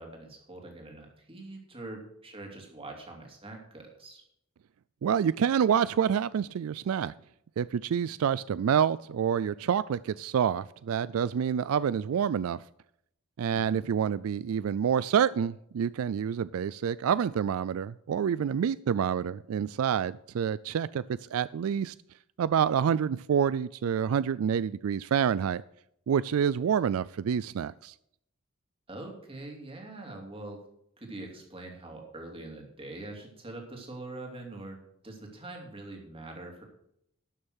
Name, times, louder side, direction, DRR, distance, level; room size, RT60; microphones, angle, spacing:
voice 1, 0.0-4.2 13.5-13.9 28.9-30.6 31.0-34.8 35.0-36.6, right 2 dB, 25° right, 1 dB, 2.8 m, -43 dB
voice 2, 5.0-7.1 7.6-12.6 13.4-21.9 22.4-25.6 26.1-27.9, right 8 dB, 85° right, 18 dB, 0.3 m, -27 dB
12.5 x 6.7 x 6.3 m, 0.74 s
head